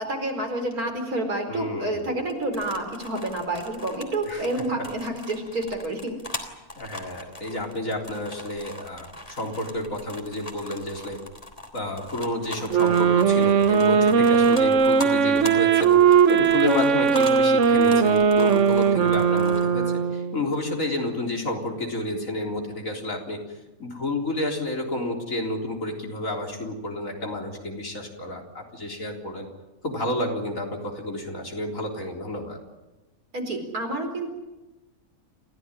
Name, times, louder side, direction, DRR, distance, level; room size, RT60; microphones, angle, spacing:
voice 1, 0.0-6.1 9.3-9.4 33.3-34.3, right 1 dB, 80° right, 4 dB, 4.9 m, -29 dB
voice 2, 1.5-2.1 4.3-4.4 6.8-11.2 11.7-23.4 23.8-29.5 29.8-32.6, left 1 dB, 60° left, 1 dB, 4.2 m, -30 dB
sound 1, 2.2-19.6, left 2 dB, 25° left, 3.2 m, -40 dB
sound 2, 12.7-20.4, right 6 dB, 55° right, 1.3 m, -19 dB
28.0 x 16.0 x 9.9 m, 1.1 s
omnidirectional pair, 1.5 m